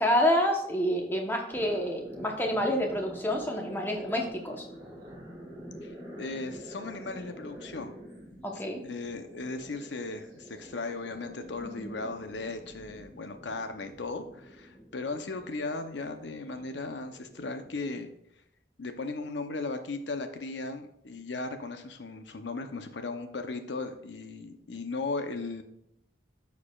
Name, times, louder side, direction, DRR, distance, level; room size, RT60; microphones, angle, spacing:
voice 1, 0.0-4.7 8.4-8.8 11.6-11.9, equal, 10° left, 1 dB, 1.0 m, -28 dB
sound 1, 1.5-17.8, equal, 25° right, 2.3 m, -47 dB
voice 2, 5.8-8.0 8.8-18.1 18.8-25.6, left 3 dB, 80° left, 7 dB, 0.8 m, -37 dB
13.0 x 4.7 x 2.4 m, 0.76 s
head